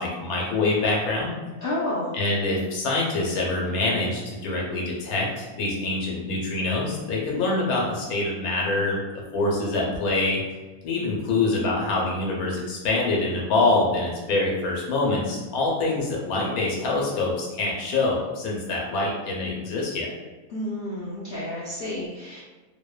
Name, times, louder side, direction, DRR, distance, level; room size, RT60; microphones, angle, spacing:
voice 1, 0.0-1.3 2.1-9.0 9.3-10.4 10.8-20.1, left 2 dB, 85° left, -3 dB, 1.1 m, -25 dB
voice 2, 1.6-2.1 20.5-22.4, left 1 dB, 70° left, -8 dB, 0.5 m, -30 dB
2.7 x 2.1 x 2.2 m, 1.2 s
omnidirectional pair, 1.5 m